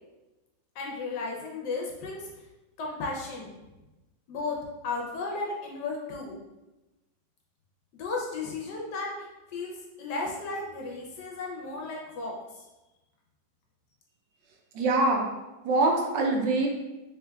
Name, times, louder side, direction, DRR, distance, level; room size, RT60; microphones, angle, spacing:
voice 1, 0.8-2.3 2.8-3.5 4.3-4.6 4.8-6.3 8.0-9.3 9.5-12.4, left 3 dB, 70° left, -1 dB, 1.1 m, -34 dB
voice 2, 14.7-15.2 15.6-16.7, right 2 dB, 80° right, 1 dB, 1.2 m, -24 dB
3.3 x 3.2 x 2.2 m, 1.0 s
omnidirectional pair, 2.1 m